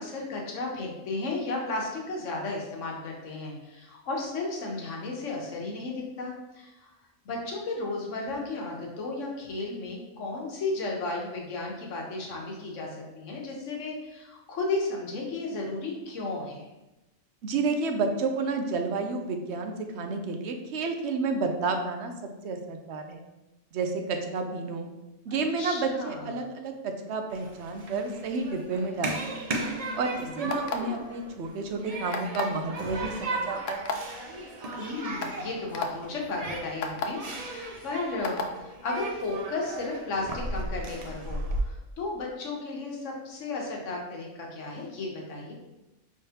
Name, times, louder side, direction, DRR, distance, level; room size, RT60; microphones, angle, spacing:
voice 1, 0.0-6.9 7.2-16.7 25.3-26.3 30.1-30.6 34.8-45.5, left 3 dB, 90° left, -1 dB, 1.3 m, -34 dB
voice 2, 17.4-22.1 22.4-23.2 23.7-24.9 25.3-29.4 30.0-34.0, right 3 dB, 70° right, 5 dB, 0.9 m, -30 dB
Human group actions, 27.3-41.6, right 2 dB, 45° right, 0.5 m, -36 dB
sound 1, 30.5-31.0 32.1-32.6 33.7-33.9 34.7-34.8 35.2-35.3 35.7-35.9 36.8-37.1 38.2-38.5, left 4 dB, 65° left, 0.8 m, -30 dB
5.2 x 3.6 x 2.8 m, 1.0 s
omnidirectional pair, 1.2 m